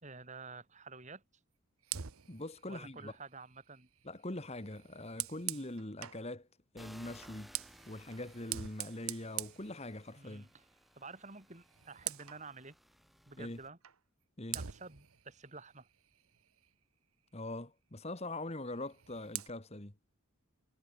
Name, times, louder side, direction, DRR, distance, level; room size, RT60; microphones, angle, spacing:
voice 1, 0.0-1.2 2.7-3.9 5.5-5.7 10.2-10.6 10.9-12.8 13.3-13.8 14.5-15.9, right 4 dB, 30° right, 3.0 m, -50 dB
Fire, 1.8-6.3 7.2-10.4 10.8-11.1 11.4-12.5 13.8-14.0 14.5-16.8 18.7-19.5, right 13 dB, 75° right, 1.0 m, -45 dB
voice 2, 2.3-3.1 4.0-6.5 6.7-7.5 7.9-10.5 13.4-13.6 14.4-14.6 17.3-19.9, left 1 dB, 30° left, 1.7 m, -43 dB
sound 1, 6.8-13.7, equal, ahead, 6.2 m, -60 dB
head